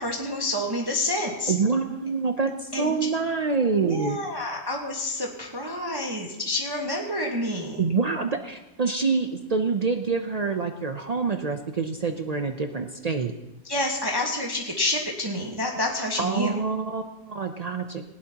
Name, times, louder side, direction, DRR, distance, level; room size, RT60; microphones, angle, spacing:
voice 1, 0.0-1.5 2.7-3.1 3.8-7.8 13.6-16.6, left 1 dB, 15° right, -1 dB, 1.2 m, -28 dB
voice 2, 1.5-4.2 7.8-13.4 16.2-18.0, right 4 dB, 85° right, 6 dB, 0.3 m, -26 dB
18.5 x 16.5 x 2.9 m, 0.97 s
omnidirectional pair, 1.6 m